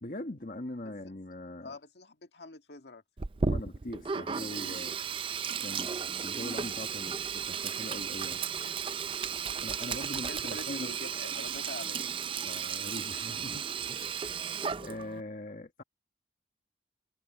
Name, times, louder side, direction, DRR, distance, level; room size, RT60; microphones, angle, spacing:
voice 1, 0.0-1.8 3.4-5.0 5.6-8.4 9.6-11.0 12.4-14.5 14.8-15.8, left 1 dB, 50° left, 1.6 m, -42 dB
voice 2, 1.6-3.0 9.8-10.0 10.3-12.1, left 2 dB, 70° left, 1.9 m, -44 dB
Sink (filling or washing), 3.2-15.2, right 6 dB, 30° right, 0.4 m, -34 dB
head